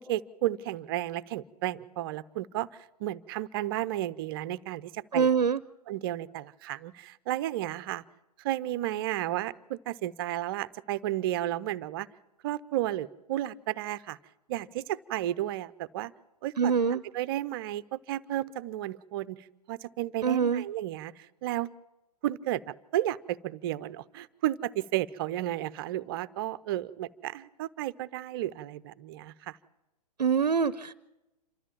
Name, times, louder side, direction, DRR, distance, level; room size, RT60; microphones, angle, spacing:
voice 1, 0.0-5.3 5.9-8.0 8.4-12.1 12.4-14.2 14.5-16.1 16.4-21.7 22.2-29.6, right 14 dB, 35° right, 16 dB, 0.6 m, -33 dB
voice 2, 5.1-5.6 16.6-17.0 20.2-20.6 30.2-30.9, right 6 dB, 75° right, 18 dB, 0.6 m, -24 dB
27.5 x 13.5 x 7.2 m, 1.0 s
figure-of-eight pair, 115°, 21 cm